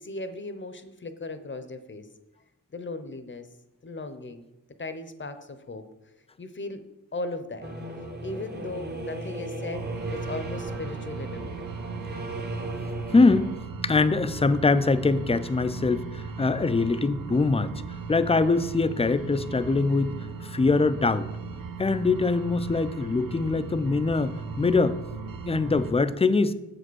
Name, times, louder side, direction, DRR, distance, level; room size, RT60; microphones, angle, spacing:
voice 1, 0.0-2.1 2.7-3.5 3.8-4.4 4.8-5.8 6.4-6.8 7.1-7.7 8.2-11.6, left 2 dB, 35° left, 10 dB, 0.8 m, -37 dB
sound 1, 7.6-13.6, right 2 dB, 30° right, 0.9 m, -36 dB
sound 2, 9.7-25.9, right 5 dB, 75° right, 0.8 m, -38 dB
voice 2, 13.1-13.5 13.8-17.7 18.1-20.1 20.4-21.3 21.8-25.0 25.4-26.5, left 3 dB, 20° left, 12 dB, 0.4 m, -23 dB
7.6 x 5.0 x 6.2 m, 0.95 s
wide cardioid pair, 115°, 34 cm